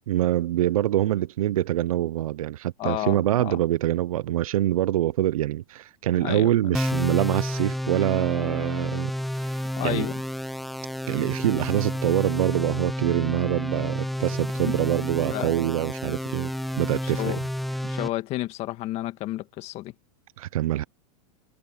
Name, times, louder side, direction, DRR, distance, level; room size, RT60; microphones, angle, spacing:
voice 1, 0.1-9.1 9.4-9.6 9.8-10.1 11.1-16.5 16.7-17.4 20.4-20.8, right 13 dB, 80° right, 0.8 m, -25 dB
voice 2, 2.8-3.6 6.2-6.8 9.8-10.2 14.6-14.8 15.3-15.5 17.0-17.4 17.8-19.9, left 16 dB, 35° left, 2.1 m, -31 dB
sound 1, 6.7-18.1, equal, ahead, 0.3 m, -30 dB
supercardioid pair, 140°, 18 cm